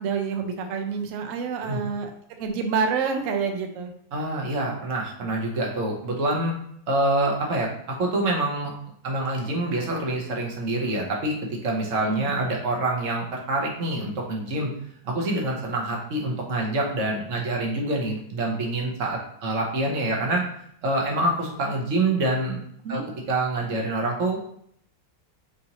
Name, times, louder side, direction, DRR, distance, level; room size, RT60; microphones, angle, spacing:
voice 1, 0.0-2.1 2.4-3.9 12.0-12.3 22.8-23.1, right 5 dB, 65° right, 5 dB, 0.8 m, -27 dB
voice 2, 4.1-6.5 6.9-7.7 8.0-8.7 9.0-14.7 15.0-20.4 20.8-22.6 22.9-23.0 23.3-24.4, right 2 dB, 50° right, -1 dB, 1.2 m, -26 dB
5.5 x 2.7 x 2.9 m, 0.68 s
omnidirectional pair, 1.9 m